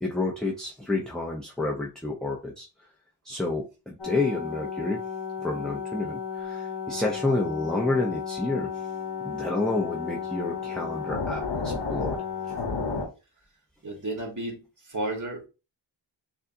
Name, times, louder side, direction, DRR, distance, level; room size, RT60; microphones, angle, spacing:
voice 1, 0.0-2.7 3.2-5.0 5.4-8.7 9.2-12.2, left 2 dB, ahead, -1 dB, 0.7 m, -29 dB
sound 1, 4.0-13.1, left 5 dB, 60° left, 1.2 m, -33 dB
voice 2, 13.8-15.5, right 1 dB, 40° right, 1 dB, 1.8 m, -33 dB
6.6 x 2.4 x 2.7 m, 0.31 s
cardioid pair, 70°, 46 cm